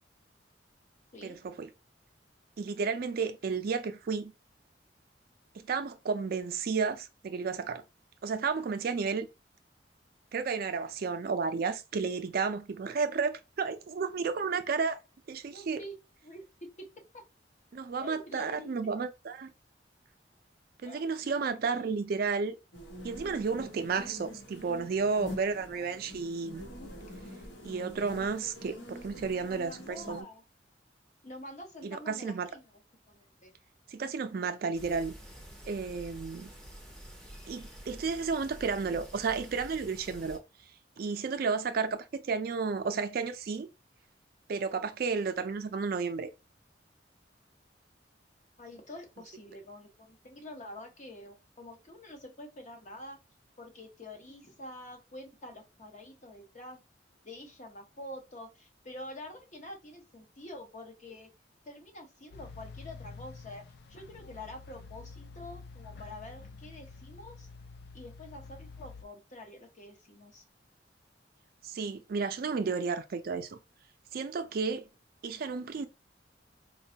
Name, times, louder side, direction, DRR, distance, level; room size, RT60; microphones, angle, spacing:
voice 1, 1.2-1.7 2.6-4.3 5.6-7.8 8.2-9.3 10.3-15.0 15.3-15.8 17.7-19.5 20.8-22.5 23.0-26.6 27.6-30.2 31.8-32.5 33.9-35.1 35.7-36.5 37.5-40.4 41.0-43.7 44.5-46.3 71.6-73.6 74.1-74.9 75.2-75.9, right 5 dB, 55° right, 0.4 m, -32 dB
voice 2, 15.5-16.0 16.2-16.9 17.1-17.2 18.0-18.7 20.8-21.0 21.7-21.9 25.7-26.2 29.4-30.4 31.2-32.7 33.1-33.5 48.6-53.2 53.6-56.8 57.2-61.3 61.7-63.6 63.9-67.5 67.9-70.4, left 1 dB, 40° left, 0.8 m, -47 dB
sound 1, 22.7-30.2, equal, 80° left, 1.1 m, -45 dB
sound 2, 34.7-40.4, equal, 5° left, 0.7 m, -48 dB
sound 3, 62.3-69.1, left 4 dB, 60° left, 0.4 m, -48 dB
4.1 x 2.2 x 2.8 m
head